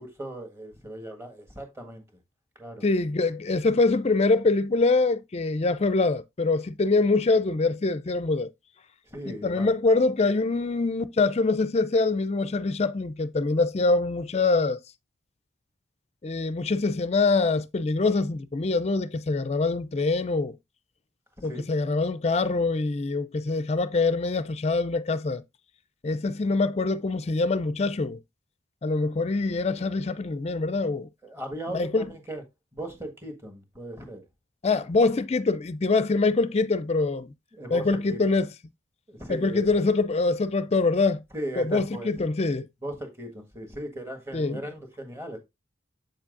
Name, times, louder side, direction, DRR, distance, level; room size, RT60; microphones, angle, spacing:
voice 1, 0.0-2.0 2.5-2.8 9.1-9.7 21.4-21.6 31.2-32.4 32.7-34.2 37.5-38.2 39.1-39.6 41.3-42.1 42.8-45.4, right 1 dB, 15° right, 1.6 m, -38 dB
voice 2, 2.8-8.5 9.4-14.8 16.2-20.6 21.4-25.4 26.0-28.2 28.8-31.1 31.7-32.1 34.6-37.3 37.7-38.5 39.3-41.2 41.6-42.7 44.3-44.6, left 3 dB, 30° left, 0.4 m, -24 dB
7.7 x 7.2 x 2.5 m
head